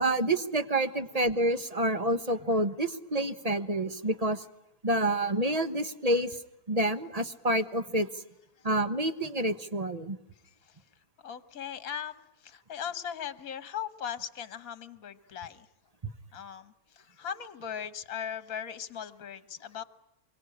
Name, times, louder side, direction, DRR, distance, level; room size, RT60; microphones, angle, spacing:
voice 1, 0.0-4.4 4.8-6.4 6.7-8.1 8.6-10.2, right 1 dB, 25° right, 10 dB, 1.1 m, -28 dB
voice 2, 10.4-10.8 11.2-15.7 16.3-19.8, left 8 dB, 65° left, 14 dB, 1.7 m, -39 dB
25.5 x 23.0 x 10.0 m, 0.80 s
omnidirectional pair, 1.7 m